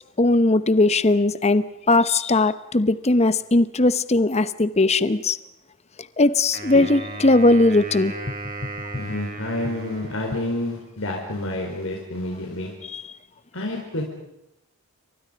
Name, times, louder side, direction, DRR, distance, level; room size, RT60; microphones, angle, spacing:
voice 1, 0.2-5.4 6.2-8.1 12.9-13.0, left 2 dB, 30° left, 14 dB, 0.8 m, -19 dB
Wind instrument woodwind instrument, 6.5-10.8, right 2 dB, 40° right, 5.1 m, -36 dB
voice 2, 8.9-12.7 13.5-14.0, left 1 dB, 65° left, 0 dB, 4.6 m, -29 dB
29.5 x 25.0 x 5.2 m, 0.84 s
head